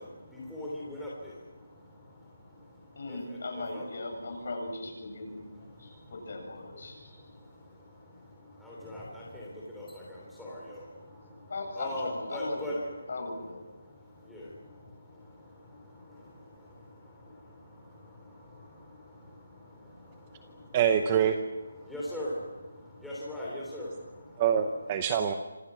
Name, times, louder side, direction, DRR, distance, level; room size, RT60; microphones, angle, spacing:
voice 1, 0.0-3.9 4.1-4.2 5.0-13.1 13.7-21.0 21.4-25.0, left 1 dB, ahead, -7 dB, 3.3 m, -43 dB
voice 2, 2.9-5.5 5.8-7.2 11.5-13.6, left 2 dB, 40° left, 3 dB, 7.6 m, -38 dB
voice 3, 20.7-21.4 24.4-25.3, right 8 dB, 15° right, 8 dB, 0.8 m, -25 dB
28.5 x 26.5 x 6.1 m, 1.2 s
hypercardioid pair, 180°, 0 cm